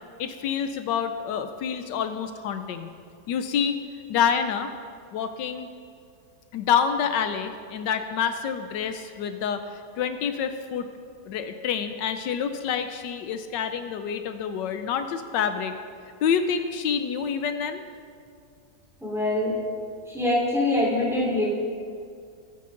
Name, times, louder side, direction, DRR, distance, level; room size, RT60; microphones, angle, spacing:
voice 1, 0.2-2.9 3.3-3.8 4.1-4.7 5.1-5.7 6.5-10.9 11.3-15.7 16.2-17.8, left 7 dB, 85° left, 8 dB, 1.3 m, -27 dB
voice 2, 19.0-19.5 20.1-21.5, left 1 dB, ahead, -5 dB, 3.8 m, -24 dB
21.0 x 9.3 x 3.8 m, 2.3 s
omnidirectional pair, 1.9 m